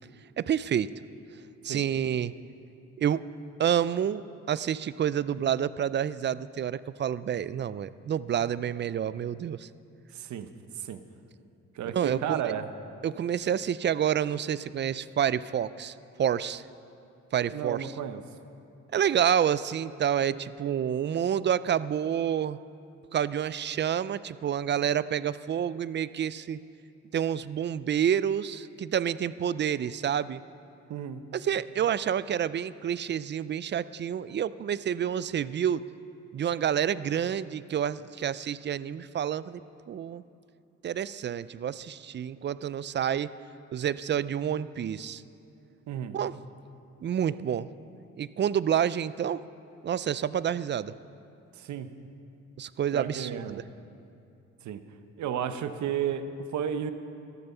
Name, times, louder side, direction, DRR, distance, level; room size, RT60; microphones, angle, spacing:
voice 1, 0.4-0.9 1.6-2.3 3.0-3.2 3.6-4.2 4.5-9.7 11.9-12.5 13.0-16.6 17.3-17.9 18.9-22.6 23.1-26.6 27.1-30.4 31.3-35.8 36.3-39.6 39.9-40.2 40.8-43.3 43.7-45.2 46.1-46.3 47.0-47.7 48.2-49.4 49.8-50.9 52.6-53.6, right 9 dB, 35° right, 17 dB, 0.4 m, -28 dB
voice 2, 10.1-10.5 10.8-11.0 11.7-12.7 17.5-18.2 30.9-31.2 45.9-46.2 51.5-51.9 52.9-53.6 54.6-54.8 55.2-56.9, right 9 dB, 70° right, 10 dB, 0.9 m, -33 dB
13.5 x 12.5 x 5.6 m, 2.6 s
cardioid pair, 90°, 30 cm